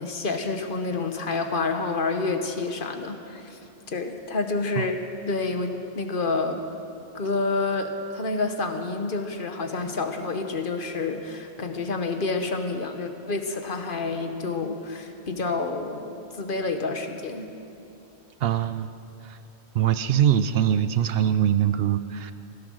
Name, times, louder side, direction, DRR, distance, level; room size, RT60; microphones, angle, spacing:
voice 1, 0.0-3.6 3.9-6.6 7.1-17.5, left 3 dB, 55° left, 6 dB, 1.2 m, -28 dB
voice 2, 18.4-18.9 19.2-19.4 19.7-22.3, right 10 dB, 70° right, 12 dB, 0.8 m, -22 dB
16.0 x 13.0 x 6.4 m, 2.7 s
omnidirectional pair, 1.1 m